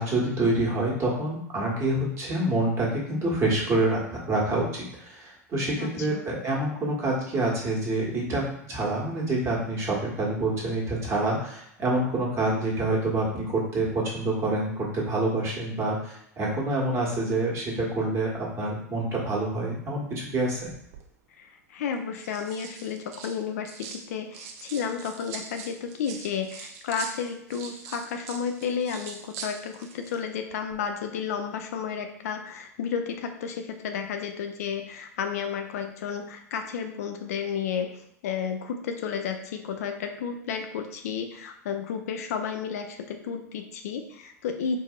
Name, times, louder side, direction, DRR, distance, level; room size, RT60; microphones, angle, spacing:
voice 1, 0.0-8.4 8.7-20.6, right 2 dB, 30° right, -3 dB, 1.4 m, -27 dB
voice 2, 5.8-6.3 21.4-44.8, left 7 dB, 65° left, 5 dB, 0.4 m, -32 dB
sound 1, 20.6-21.1 21.9-24.0 24.3-30.2 30.5-30.7, right 6 dB, 55° right, 0.6 m, -43 dB
4.6 x 2.6 x 2.4 m, 0.74 s
figure-of-eight pair, 85°, 9 cm